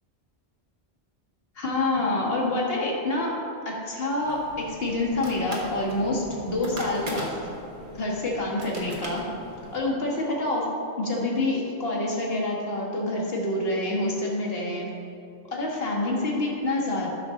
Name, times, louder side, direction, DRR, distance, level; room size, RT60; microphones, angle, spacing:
voice 1, 1.6-3.3 3.7-7.4 7.9-9.2 9.7-10.7 11.0-14.9 15.5-17.1, left 2 dB, 65° left, -3 dB, 1.7 m, -27 dB
sound 1, 4.2-9.8, equal, 50° right, 1.6 m, -39 dB
12.5 x 6.3 x 3.7 m, 2.9 s
omnidirectional pair, 1.1 m